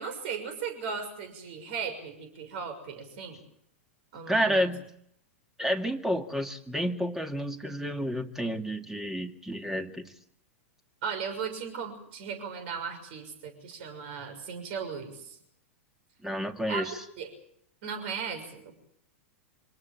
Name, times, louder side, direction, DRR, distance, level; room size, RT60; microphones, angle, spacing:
voice 1, 0.0-3.4 4.1-4.7 11.0-15.4 16.7-17.3 17.8-18.7, right 6 dB, 55° right, 8 dB, 6.4 m, -37 dB
voice 2, 4.3-4.8 5.6-10.1 16.2-16.9, equal, 5° right, 6 dB, 2.3 m, -30 dB
26.5 x 18.5 x 7.6 m, 0.71 s
hypercardioid pair, 100°, 7 cm